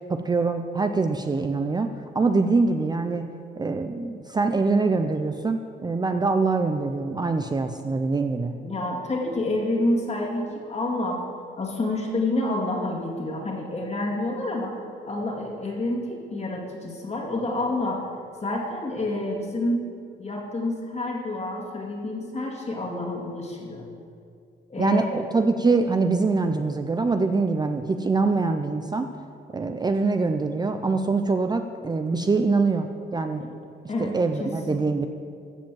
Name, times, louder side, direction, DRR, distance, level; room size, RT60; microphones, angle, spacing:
voice 1, 0.1-1.9 2.1-3.3 3.6-8.6 24.8-29.1 29.5-32.9 33.1-33.4 34.0-35.1, right 3 dB, 20° right, 6 dB, 0.5 m, -24 dB
voice 2, 8.6-11.2 11.6-18.1 18.4-19.8 20.2-23.9 24.7-25.2 33.4-33.5 33.9-34.8, left 2 dB, 35° left, -1 dB, 2.1 m, -28 dB
14.5 x 5.1 x 7.6 m, 2.4 s
cardioid pair, 90°, 20 cm